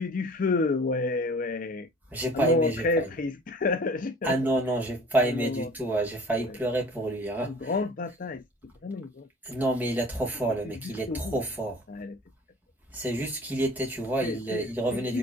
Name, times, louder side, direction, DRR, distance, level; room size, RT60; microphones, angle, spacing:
voice 1, 0.0-1.9 2.3-4.4 5.2-5.7 6.3-6.6 7.4-8.4 8.8-9.3 10.6-11.4 11.9-12.2 14.2-15.2, left 3 dB, 45° left, 0.4 m, -29 dB
voice 2, 2.1-3.1 4.2-7.7 9.4-11.8 12.9-15.2, right 1 dB, 10° right, 2.0 m, -29 dB
5.2 x 3.6 x 2.3 m
head